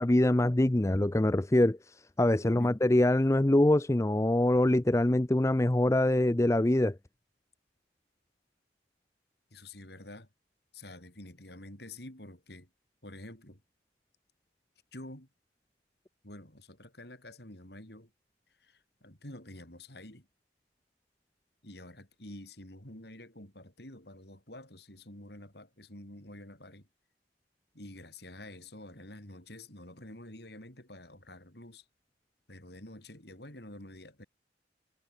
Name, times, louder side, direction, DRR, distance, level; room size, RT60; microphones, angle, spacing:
voice 1, 0.0-1.8 2.2-7.0, left 1 dB, 15° left, 0.5 m, -24 dB
voice 2, 2.4-2.8 9.5-10.3 10.7-12.7 13.0-13.6 14.9-15.3 16.2-18.1 18.6-20.3 21.6-26.9 27.7-31.8 32.5-34.3, left 1 dB, 60° left, 5.8 m, -48 dB
head